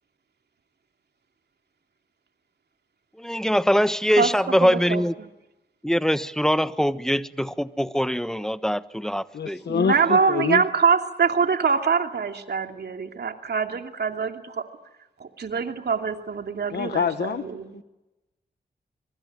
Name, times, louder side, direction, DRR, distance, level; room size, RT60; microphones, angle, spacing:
voice 1, 3.2-5.1 5.8-9.6, equal, 5° left, 13 dB, 1.3 m, -23 dB
voice 2, 4.2-5.3 9.7-14.7 15.2-17.8, right 5 dB, 75° right, 5 dB, 2.7 m, -24 dB
voice 3, 9.3-10.6 16.7-17.8, left 6 dB, 80° left, 11 dB, 1.2 m, -26 dB
25.0 x 24.0 x 9.6 m, 1.0 s
cardioid pair, 55°, 17 cm